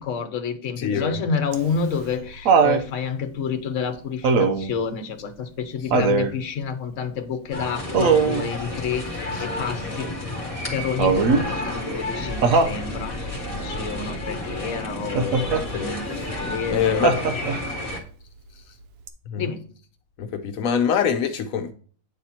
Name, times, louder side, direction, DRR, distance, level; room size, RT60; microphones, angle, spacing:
voice 1, 0.0-10.2 10.7-17.2 19.4-19.7, left 6 dB, 65° left, 1.2 m, -29 dB
voice 2, 0.8-1.2 5.9-6.1 15.6-15.9 16.7-17.2 19.3-19.4 20.2-21.7, left 7 dB, 85° left, 1.1 m, -24 dB
Laughter, 1.5-2.8 4.2-4.7 5.9-6.3 7.9-8.5 11.0-11.5 12.4-12.8 15.1-15.6 17.0-17.7 19.1-19.2, right 5 dB, 75° right, 1.1 m, -20 dB
sound 1, 7.5-18.0, left 1 dB, 25° left, 1.7 m, -31 dB
8.9 x 4.3 x 4.2 m
omnidirectional pair, 1.4 m